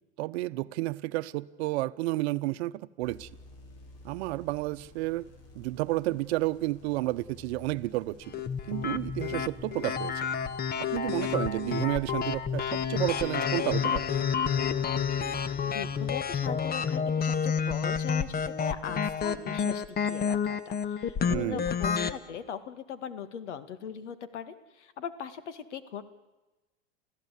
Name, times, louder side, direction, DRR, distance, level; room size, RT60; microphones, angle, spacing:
voice 1, 0.2-3.3 4.0-5.2 5.6-8.3 8.7-10.1 10.8-14.1 21.3-21.7, right 18 dB, 65° right, 0.9 m, -31 dB
sound 1, 3.0-16.8, left 2 dB, 45° left, 5.4 m, -52 dB
sound 2, 8.3-22.1, left 7 dB, 25° left, 1.2 m, -29 dB
voice 2, 15.7-26.0, left 8 dB, 80° left, 1.9 m, -40 dB
28.5 x 15.5 x 8.4 m
hypercardioid pair, 105°, 34 cm